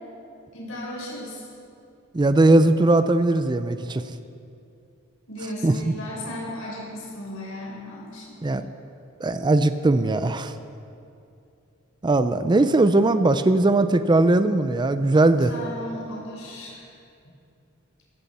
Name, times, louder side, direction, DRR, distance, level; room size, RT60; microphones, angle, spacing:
voice 1, 0.5-1.4 5.3-8.5 15.5-16.9, left 1 dB, 80° left, -3 dB, 4.2 m, -35 dB
voice 2, 2.1-4.0 5.6-5.9 8.4-8.6 9.2-10.5 12.0-15.5, right 2 dB, 20° right, 11 dB, 0.4 m, -19 dB
16.5 x 14.0 x 4.2 m, 2.6 s
head